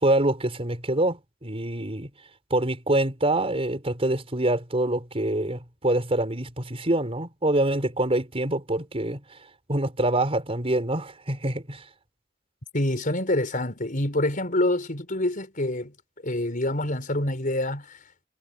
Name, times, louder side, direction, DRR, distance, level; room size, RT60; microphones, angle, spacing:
voice 1, 0.0-2.1 2.5-9.2 9.7-11.8, right 1 dB, 30° right, 5.2 m, -25 dB
voice 2, 12.7-15.9 16.2-18.0, left 1 dB, 45° left, 5.3 m, -26 dB
head